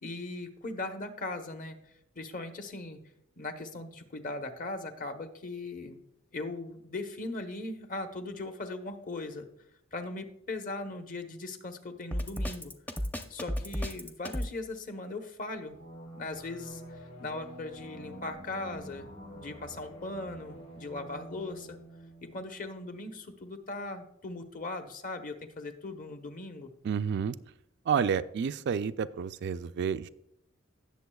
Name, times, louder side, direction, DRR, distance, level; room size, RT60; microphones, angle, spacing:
voice 1, 0.0-1.8 2.2-3.0 3.4-6.0 6.3-9.5 9.9-12.7 13.3-15.8 16.1-19.1 19.4-21.8 22.3-26.7, left 2 dB, 45° left, 7 dB, 0.9 m, -39 dB
Drum kit, 12.1-14.5, equal, 10° left, 0.6 m, -33 dB
sound 1, 15.7-23.1, equal, 65° left, 3.7 m, -47 dB
voice 2, 26.8-27.3 27.9-30.1, right 7 dB, 55° right, 12 dB, 0.3 m, -30 dB
17.5 x 6.9 x 2.3 m, 0.78 s
head